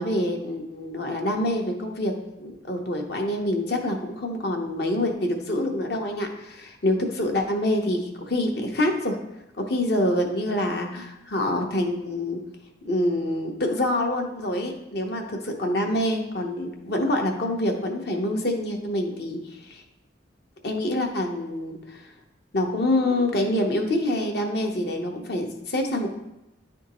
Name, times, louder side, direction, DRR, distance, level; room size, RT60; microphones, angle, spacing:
voice 1, 0.0-2.1 2.4-9.2 9.6-12.4 12.8-19.8 20.6-22.0 22.5-26.1, left 1 dB, 55° left, 2 dB, 0.9 m, -26 dB
10.5 x 3.5 x 3.0 m, 0.91 s
head